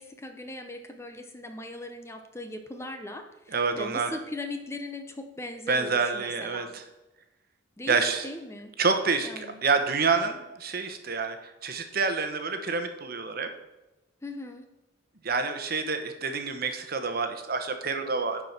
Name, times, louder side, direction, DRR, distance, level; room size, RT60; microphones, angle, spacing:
voice 1, 0.0-6.7 7.8-8.7 9.2-9.6 14.2-14.6, left 2 dB, 15° left, 6 dB, 0.7 m, -39 dB
voice 2, 3.5-4.1 5.7-6.8 7.9-8.2 8.8-11.4 11.6-13.5 15.2-18.4, right 4 dB, 50° right, 7 dB, 1.1 m, -27 dB
11.0 x 4.9 x 5.9 m, 1.0 s
head